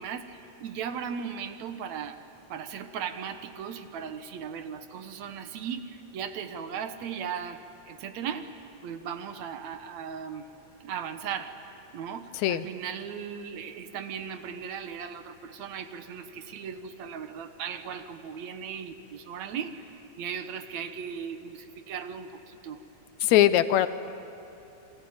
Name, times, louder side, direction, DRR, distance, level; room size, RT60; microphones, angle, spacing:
voice 1, 0.0-2.2 2.5-7.6 7.9-10.4 10.8-11.5 11.9-19.9 20.2-22.8 23.3-23.5, right 7 dB, 70° right, 9 dB, 2.3 m, -37 dB
voice 2, 12.3-12.7 23.2-23.9, left 13 dB, 75° left, 13 dB, 2.0 m, -21 dB
28.0 x 22.5 x 8.7 m, 2.9 s
omnidirectional pair, 3.4 m